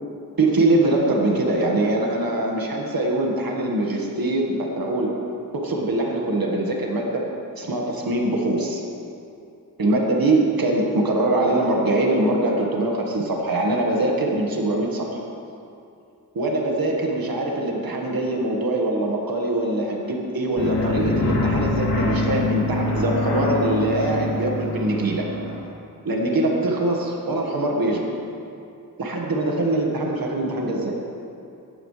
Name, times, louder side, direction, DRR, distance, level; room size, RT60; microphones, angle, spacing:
voice 1, 0.4-5.2 5.5-7.3 7.6-8.8 9.8-15.2 16.4-25.3 26.0-28.1 29.0-31.0, right 2 dB, 75° right, -1 dB, 1.8 m, -23 dB
sound 1, 20.6-25.6, left 2 dB, 55° left, 3.4 m, -24 dB
17.0 x 12.5 x 3.4 m, 2.6 s
wide cardioid pair, 70°, 35 cm